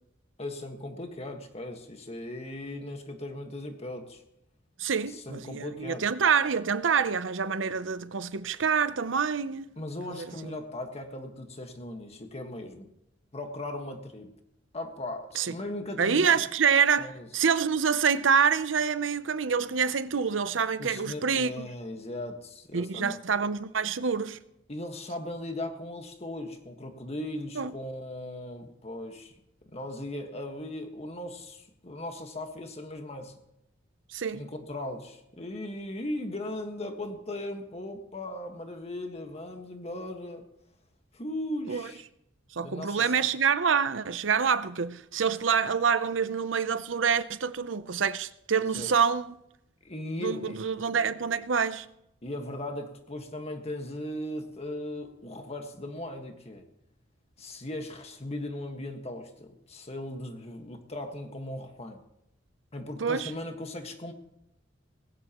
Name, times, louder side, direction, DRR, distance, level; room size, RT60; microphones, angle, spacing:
voice 1, 0.4-4.2 5.1-6.0 9.8-12.9 13.3-14.3 14.7-16.4 17.0-17.3 20.8-23.2 24.7-29.3 29.7-33.3 34.3-40.5 41.1-42.0 42.6-43.3 48.5-48.9 49.8-50.6 52.2-56.6 57.4-62.0 62.7-64.1, left 1 dB, 35° left, 1.6 m, -38 dB
voice 2, 4.8-9.7 10.2-10.5 15.3-15.5 16.0-21.7 22.7-24.4 27.6-27.7 34.1-34.5 41.7-41.9 42.5-49.3 50.2-51.9 63.0-63.3, right 6 dB, 80° right, 0.7 m, -26 dB
19.5 x 17.0 x 3.1 m
head